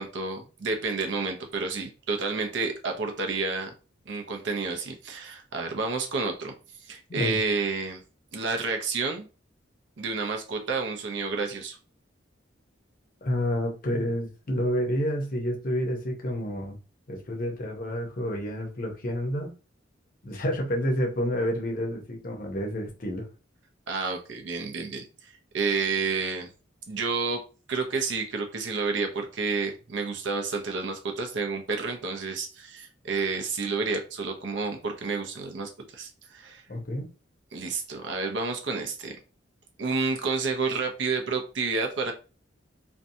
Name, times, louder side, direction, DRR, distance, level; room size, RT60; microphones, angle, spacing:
voice 1, 0.0-3.7 4.1-6.5 6.8-8.0 8.3-9.3 10.0-11.8 23.9-26.5 26.9-27.4 27.7-36.6 37.5-39.1 39.8-42.1, right 4 dB, 65° right, 4 dB, 0.5 m, -30 dB
voice 2, 13.2-16.8 17.1-19.5 20.2-23.3 36.7-37.1, equal, 45° left, 2 dB, 0.6 m, -29 dB
2.6 x 2.2 x 2.6 m, 0.34 s
head